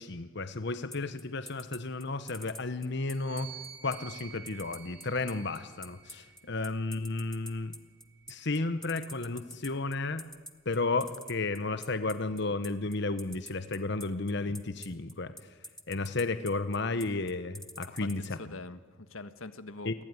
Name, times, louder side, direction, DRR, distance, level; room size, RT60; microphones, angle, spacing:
voice 1, 0.0-3.5 3.8-7.7 8.3-10.3 10.6-15.3 15.9-18.4 19.8-19.9, left 3 dB, 60° left, 11 dB, 1.2 m, -33 dB
sound 1, 0.9-18.3, left 1 dB, ahead, 1.2 m, -46 dB
sound 2, 3.0-6.6 7.5-9.1, right 9 dB, 70° right, 5.7 m, -51 dB
voice 2, 18.0-20.0, left 3 dB, 90° left, 12 dB, 1.5 m, -44 dB
28.5 x 21.5 x 9.8 m, 1.3 s
head